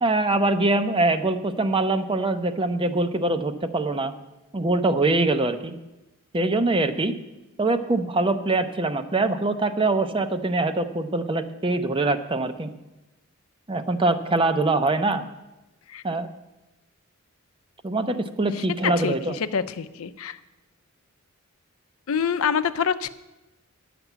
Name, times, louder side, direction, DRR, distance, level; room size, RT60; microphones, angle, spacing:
voice 1, 0.0-4.1 4.5-5.7 6.3-7.1 7.6-12.7 13.7-15.2 16.0-16.3 17.8-19.4, right 2 dB, 25° right, 9 dB, 0.6 m, -23 dB
voice 2, 18.6-19.1 19.5-20.4 22.1-23.1, left 7 dB, 80° left, 12 dB, 0.6 m, -26 dB
11.0 x 5.9 x 8.1 m, 1.0 s
head